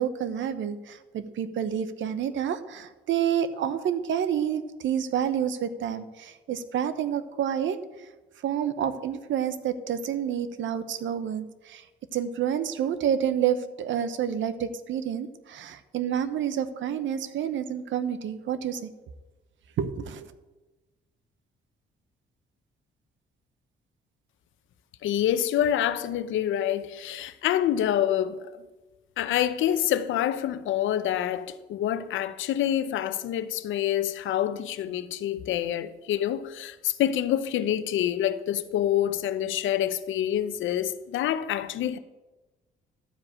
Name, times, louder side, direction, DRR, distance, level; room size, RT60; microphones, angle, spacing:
voice 1, 0.0-7.8 8.4-11.8 12.1-18.9 19.8-20.3, right 9 dB, 70° right, 1.0 m, -29 dB
voice 2, 25.0-28.5 29.2-42.0, left 11 dB, 80° left, 0.7 m, -27 dB
12.5 x 4.9 x 8.6 m
cardioid pair, 90°, 20 cm